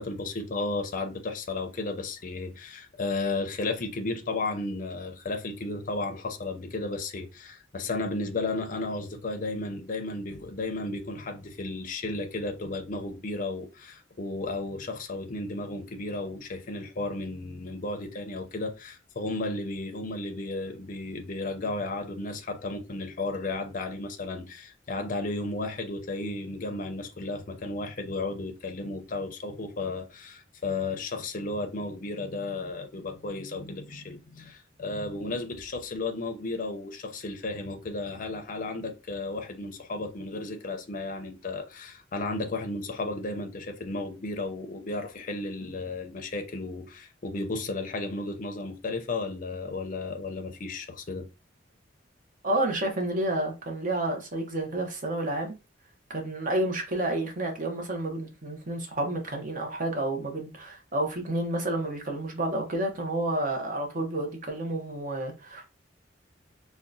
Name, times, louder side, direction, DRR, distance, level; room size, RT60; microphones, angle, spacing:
voice 1, 0.0-51.3, left 2 dB, 45° left, 0.5 m, -34 dB
voice 2, 52.4-55.5 56.1-65.6, right 1 dB, 45° right, 0.8 m, -30 dB
3.5 x 2.2 x 2.6 m
head